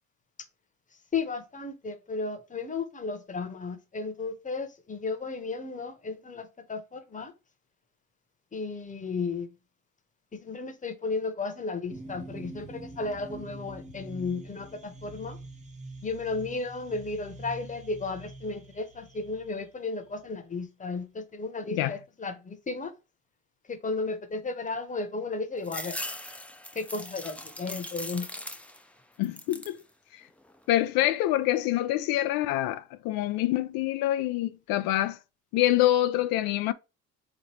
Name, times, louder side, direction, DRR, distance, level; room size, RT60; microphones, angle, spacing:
voice 1, 1.1-7.3 8.5-9.5 10.4-15.4 16.0-22.9 23.7-26.0 26.7-28.3, left 3 dB, 20° left, 0.9 m, -34 dB
sound 1, 11.9-20.5, right 2 dB, 20° right, 0.8 m, -45 dB
sound 2, 25.6-28.9 29.2-29.8 30.3-31.0, left 1 dB, 5° left, 0.5 m, -40 dB
voice 2, 29.2-29.8 30.1-30.2 30.7-35.2 35.5-36.7, left 14 dB, 85° left, 0.5 m, -26 dB
3.7 x 3.0 x 3.2 m
cardioid pair, 85°, 34 cm